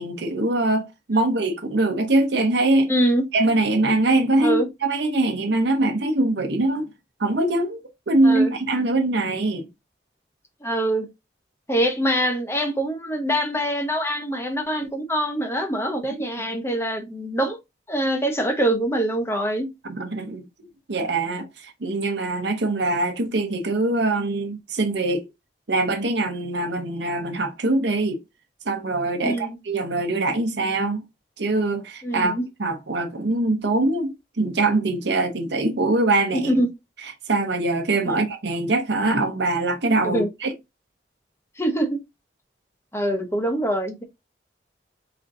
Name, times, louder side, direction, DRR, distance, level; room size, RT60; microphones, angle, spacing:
voice 1, 0.0-2.9 3.3-6.9 7.2-9.7 19.8-25.3 25.7-28.2 28.6-31.0 31.4-36.4 37.3-40.5, right 2 dB, 85° right, 0.8 m, -23 dB
voice 2, 2.9-3.2 4.4-4.7 8.2-8.5 10.6-11.1 11.7-17.6 17.9-19.7 29.2-29.6 32.0-32.4 36.3-36.7 38.0-38.2 40.0-40.3 41.6-42.0 42.9-44.0, right 1 dB, 15° left, 0.8 m, -24 dB
4.3 x 3.9 x 2.6 m
head